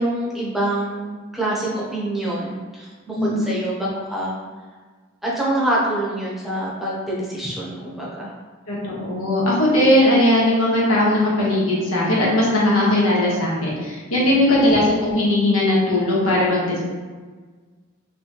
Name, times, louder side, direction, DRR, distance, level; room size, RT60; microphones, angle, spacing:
voice 1, 0.0-4.4 5.2-8.3 14.2-14.8, right 1 dB, ahead, -6 dB, 0.8 m, -26 dB
voice 2, 8.7-16.8, left 1 dB, 90° left, -5 dB, 1.3 m, -18 dB
4.1 x 3.2 x 2.9 m, 1.4 s
head